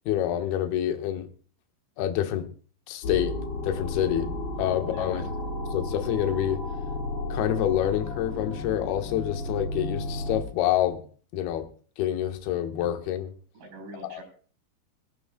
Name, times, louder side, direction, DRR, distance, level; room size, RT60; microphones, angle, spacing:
voice 1, 0.1-1.3 2.0-2.5 2.9-3.4 3.6-5.2 5.7-6.6 7.3-11.0 11.3-11.7 12.0-13.3 14.1-14.2, left 11 dB, 65° left, 6 dB, 2.8 m, -27 dB
sound 1, 3.0-10.4, left 2 dB, 50° left, 2.5 m, -33 dB
voice 2, 4.9-5.2 13.5-14.2, right 2 dB, 60° right, 6 dB, 6.1 m, -43 dB
23.5 x 12.5 x 2.2 m, 0.42 s
omnidirectional pair, 5.5 m